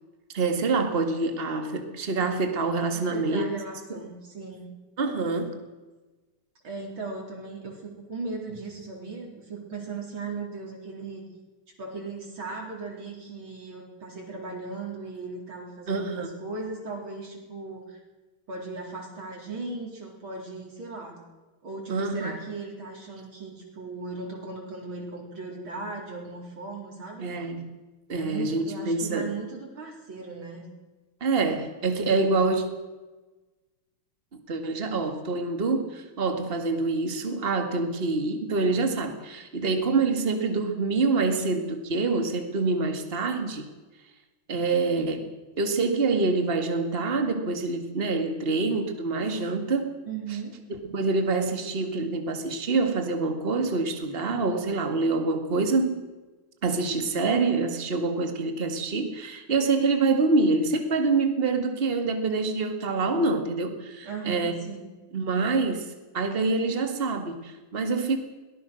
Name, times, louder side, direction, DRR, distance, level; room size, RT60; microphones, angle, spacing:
voice 1, 0.3-3.5 3.9-4.0 5.0-5.6 15.9-16.3 21.9-22.3 27.2-27.7 28.1-29.3 31.2-32.6 34.5-43.7 44.5-45.3 45.6-50.0 50.8-56.1 56.6-64.6 65.1-65.9 66.1-68.2, right 3 dB, 25° right, 6 dB, 2.0 m, -26 dB
voice 2, 2.9-4.7 6.6-11.2 11.8-18.0 18.5-21.2 21.6-27.3 28.2-30.7 50.1-50.6 64.0-64.9, right 3 dB, 65° right, -1 dB, 4.7 m, -37 dB
22.5 x 18.5 x 6.4 m, 1.2 s
omnidirectional pair, 2.4 m